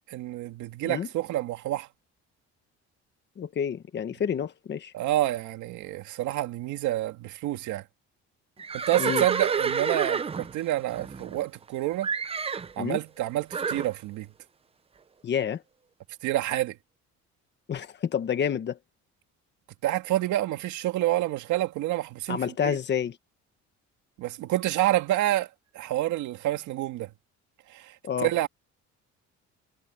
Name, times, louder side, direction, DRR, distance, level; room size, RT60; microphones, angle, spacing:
voice 1, 0.1-1.9 4.9-7.8 8.7-12.1 12.8-14.3 16.2-16.8 19.8-22.8 24.2-25.5 25.7-27.1 27.7-28.5, right 14 dB, 90° right, 2.1 m, -28 dB
voice 2, 3.4-4.9 9.0-9.2 12.8-13.0 15.2-15.6 17.7-18.8 22.3-23.1 28.0-28.3, left 8 dB, 35° left, 1.5 m, -29 dB
Livestock farm animals working animals, 8.6-11.7 12.0-12.7 13.5-13.9, right 5 dB, 20° right, 0.6 m, -29 dB
cardioid pair, 160°, 29 cm